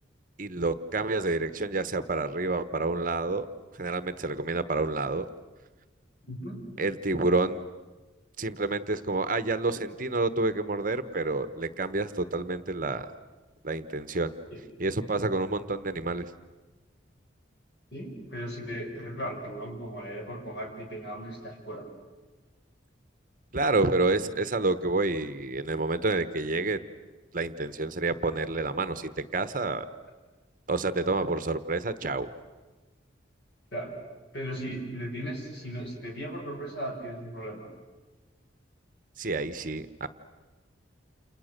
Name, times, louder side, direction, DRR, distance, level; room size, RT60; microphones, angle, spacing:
voice 1, 0.4-3.5 3.8-5.3 6.8-7.6 8.4-13.1 13.6-14.3 14.8-16.3 23.5-26.8 27.3-29.9 30.7-32.3 39.2-40.1, right 2 dB, 45° right, 12 dB, 1.0 m, -28 dB
voice 2, 6.3-6.7 14.5-14.6 17.9-21.9 33.7-34.0 34.3-37.7, equal, 60° left, 0 dB, 6.7 m, -37 dB
29.5 x 29.0 x 6.7 m, 1.2 s
head